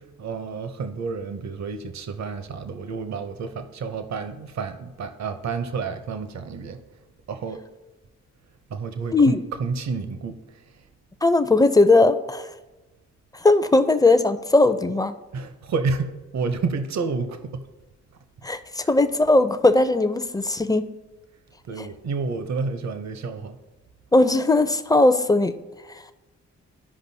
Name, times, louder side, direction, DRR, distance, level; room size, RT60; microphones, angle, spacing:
voice 1, 0.0-6.8 7.3-7.6 8.7-10.8 15.3-17.6 21.7-23.6, right 4 dB, 65° right, 8 dB, 0.7 m, -30 dB
voice 2, 11.2-12.5 13.3-15.1 18.4-20.8 21.8-21.9 24.1-25.5 25.9-26.1, left 2 dB, 15° left, 10 dB, 0.5 m, -19 dB
13.5 x 5.0 x 2.7 m, 1.1 s
cardioid pair, 60°, 29 cm